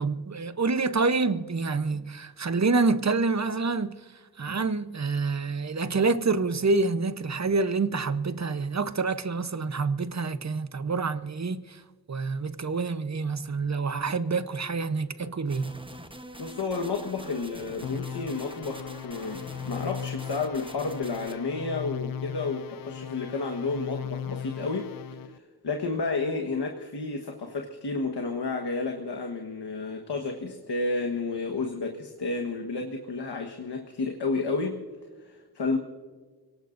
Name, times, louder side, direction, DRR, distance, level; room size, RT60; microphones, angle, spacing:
voice 1, 0.0-4.0 4.4-11.8 12.1-15.7, right 4 dB, 45° right, 0.9 m, -27 dB
sound 1, 15.5-21.4, equal, 15° right, 1.0 m, -45 dB
voice 2, 16.4-24.9 25.3-34.8 35.3-35.8, left 3 dB, 80° left, 1.4 m, -31 dB
sound 2, 17.8-25.4, left 9 dB, 60° left, 0.5 m, -38 dB
28.5 x 18.5 x 2.6 m
wide cardioid pair, 80°, 40 cm